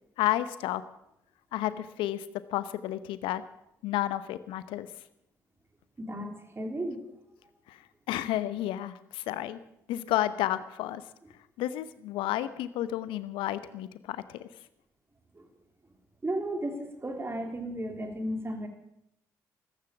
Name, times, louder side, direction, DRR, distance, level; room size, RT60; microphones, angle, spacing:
voice 1, 0.2-0.8 1.5-3.4 3.8-4.9 7.7-7.8 8.1-9.6 9.9-11.0 11.6-14.5, left 13 dB, 70° left, 15 dB, 0.9 m, -31 dB
voice 2, 6.0-7.0 15.3-15.5 16.2-18.7, right 1 dB, 25° right, 4 dB, 3.7 m, -34 dB
14.5 x 13.5 x 7.2 m, 0.79 s
hypercardioid pair, 40°, 9 cm